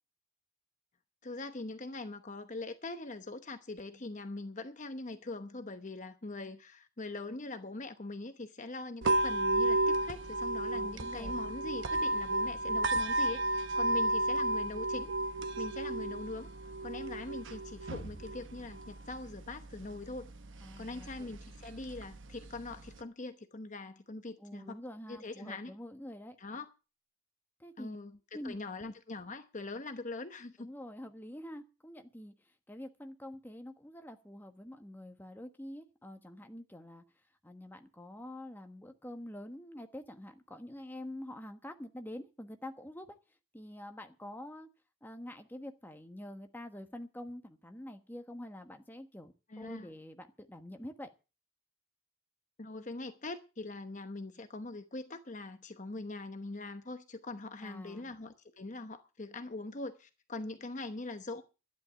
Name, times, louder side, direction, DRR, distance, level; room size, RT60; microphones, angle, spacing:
voice 1, 1.2-15.1 15.6-16.5 16.8-20.3 20.8-24.8 25.1-25.7 26.4-26.7 27.8-30.7 49.5-49.9 52.6-61.4, left 2 dB, 35° left, 1.0 m, -42 dB
sound 1, 9.0-23.0, right 1 dB, 60° right, 1.1 m, -33 dB
voice 2, 10.7-11.4 20.6-21.3 24.4-26.4 27.6-28.0 28.3-28.9 30.6-37.0 37.4-43.1 43.5-44.7 45.0-51.1 57.6-58.1, left 1 dB, 10° left, 1.2 m, -46 dB
12.0 x 10.0 x 7.0 m
head